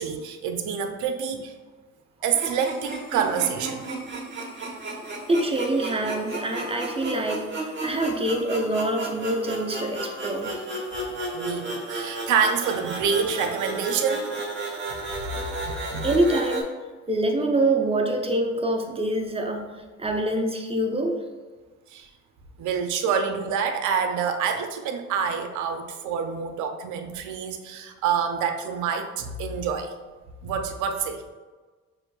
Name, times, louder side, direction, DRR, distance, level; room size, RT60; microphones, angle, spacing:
voice 1, 0.0-1.5 2.2-3.9 11.3-14.3 15.3-16.1 21.9-22.1 22.6-29.9 30.4-31.3, right 6 dB, 80° right, 6 dB, 0.5 m, -27 dB
sound 1, 2.3-16.6, right 2 dB, 40° right, 1.1 m, -33 dB
voice 2, 5.3-10.6 15.3-15.6 16.0-16.7 17.1-19.7 20.0-21.2, right 1 dB, 20° right, 3 dB, 0.5 m, -25 dB
6.0 x 2.5 x 2.2 m, 1.3 s
cardioid pair, 90°, 30 cm